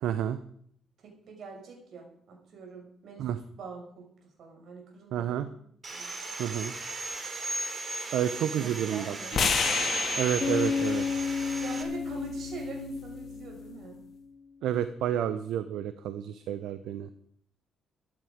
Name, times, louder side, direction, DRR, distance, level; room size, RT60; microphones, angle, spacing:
voice 1, 0.0-0.4 3.2-3.4 5.1-5.5 6.4-6.7 8.1-9.5 10.2-11.1 14.6-17.1, right 10 dB, 85° right, 11 dB, 0.8 m, -30 dB
voice 2, 1.0-3.3 3.6-4.1 4.4-5.5 5.9-6.4 8.4-9.4 11.6-14.0, right 4 dB, 65° right, 1 dB, 6.0 m, -44 dB
Sawing, 5.8-11.8, right 3 dB, 35° right, 3.1 m, -36 dB
sound 1, 9.3-13.5, left 5 dB, 55° left, 2.5 m, -32 dB
Bass guitar, 10.4-14.0, left 5 dB, 35° left, 2.4 m, -32 dB
14.0 x 11.0 x 5.1 m, 0.65 s
cardioid pair, 90°, 0 cm